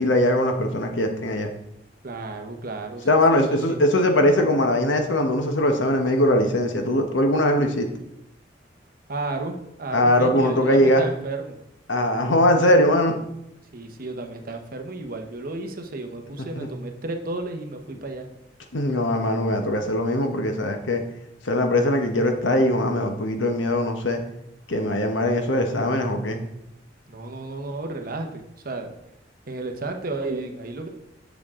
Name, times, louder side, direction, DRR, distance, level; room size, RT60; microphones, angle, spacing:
voice 1, 0.0-1.5 3.0-7.9 9.9-11.0 11.9-13.1 16.5-16.7 18.7-21.0 21.4-24.2 24.7-26.4, left 1 dB, 85° left, 5 dB, 1.1 m, -21 dB
voice 2, 2.0-3.8 9.1-11.6 13.7-18.3 27.1-28.9 29.5-30.9, right 2 dB, 50° right, 4 dB, 1.0 m, -33 dB
7.5 x 7.1 x 3.7 m, 0.80 s
head